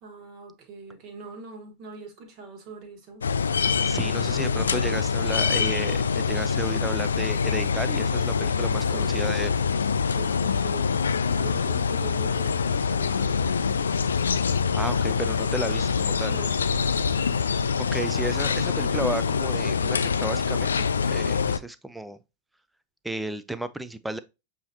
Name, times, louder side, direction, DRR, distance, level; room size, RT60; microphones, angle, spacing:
voice 1, 0.0-3.3 4.0-4.7 8.8-9.2 10.1-10.9 11.3-15.1 16.3-16.6, right 5 dB, 40° right, 1.5 m, -43 dB
sound 1, 3.2-21.6, left 5 dB, 70° left, 0.3 m, -25 dB
voice 2, 3.8-9.5 14.7-16.3 17.9-22.2 23.0-24.2, right 1 dB, 5° right, 0.4 m, -33 dB
6.9 x 2.9 x 2.7 m
figure-of-eight pair, 90°, 0 cm